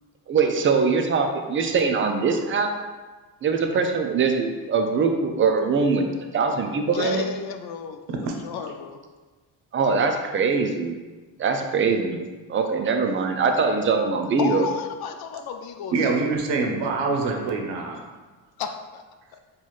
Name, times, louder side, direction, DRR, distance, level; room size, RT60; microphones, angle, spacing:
voice 1, 0.3-2.7 3.4-7.3 9.7-11.0 11.4-12.2 12.5-14.6, right 4 dB, 30° right, 4 dB, 0.4 m, -22 dB
voice 2, 6.9-9.0 14.4-16.3 18.6-19.0 19.3-19.4, left 7 dB, 60° left, 6 dB, 0.5 m, -33 dB
voice 3, 15.9-18.0, right 4 dB, 80° right, 2 dB, 0.7 m, -25 dB
3.9 x 2.4 x 3.1 m, 1.3 s
cardioid pair, 85°, 42 cm